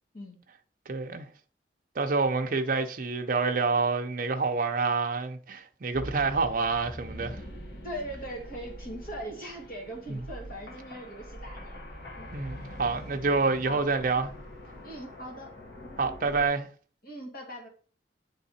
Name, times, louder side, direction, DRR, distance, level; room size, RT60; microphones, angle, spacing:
voice 1, 0.9-1.3 2.0-7.4 10.1-10.2 12.3-14.3 16.0-16.7, right 4 dB, 50° right, 0.6 m, -27 dB
sound 1, 5.9-16.5, equal, 70° left, 1.9 m, -44 dB
voice 2, 7.8-11.9 12.1-12.3 13.6-13.8 14.8-15.5 17.0-17.7, equal, 55° left, 2.2 m, -40 dB
8.2 x 3.5 x 4.2 m
head